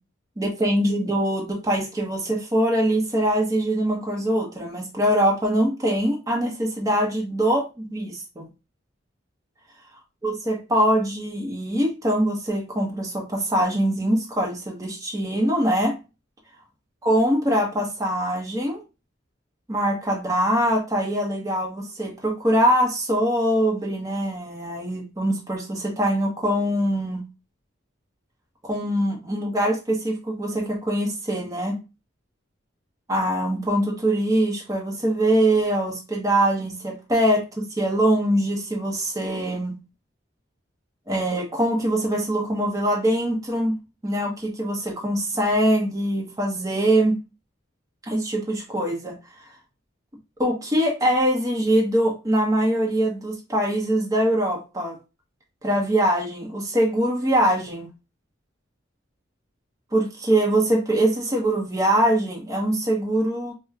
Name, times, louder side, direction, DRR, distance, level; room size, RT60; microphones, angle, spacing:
voice 1, 0.4-8.5 10.2-16.0 17.0-18.8 19.7-27.2 28.6-31.8 33.1-39.7 41.1-43.7 44.0-47.2 48.0-49.1 50.4-55.0 55.6-57.9 59.9-63.5, right 1 dB, 20° right, -1 dB, 0.9 m, -23 dB
5.0 x 2.2 x 2.3 m, 0.28 s
head